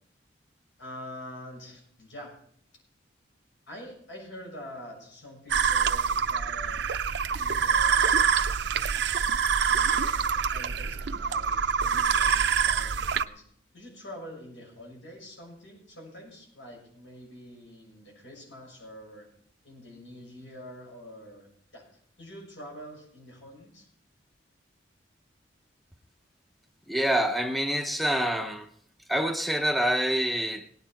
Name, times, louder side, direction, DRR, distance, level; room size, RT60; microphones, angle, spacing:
voice 1, 0.8-2.3 3.7-6.8 7.4-8.3 9.7-13.4 13.7-19.3 19.6-21.9 22.2-23.9, equal, 85° left, 0 dB, 6.9 m, -46 dB
sound 1, 5.5-13.2, right 6 dB, 65° right, 0.6 m, -25 dB
voice 2, 26.9-28.7 29.1-30.7, right 1 dB, ahead, 7 dB, 0.6 m, -26 dB
18.0 x 9.6 x 4.5 m, 0.63 s
head